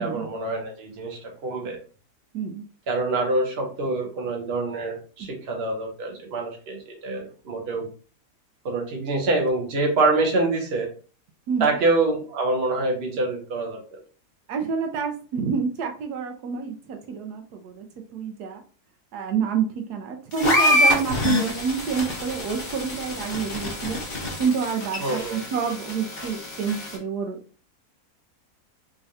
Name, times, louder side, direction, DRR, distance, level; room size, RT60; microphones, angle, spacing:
voice 1, 0.0-1.8 2.9-7.9 8.6-10.9 11.6-14.0 25.0-25.4, right 2 dB, 45° right, 2 dB, 1.1 m, -25 dB
voice 2, 2.3-2.6 5.2-5.3 11.5-11.8 14.5-17.9 18.1-18.6 19.1-24.0 24.4-27.4, right 6 dB, 80° right, 4 dB, 1.2 m, -28 dB
sound 1, 20.3-27.0, left 1 dB, 35° left, 1.5 m, -26 dB
3.7 x 3.2 x 2.7 m, 0.37 s
omnidirectional pair, 1.7 m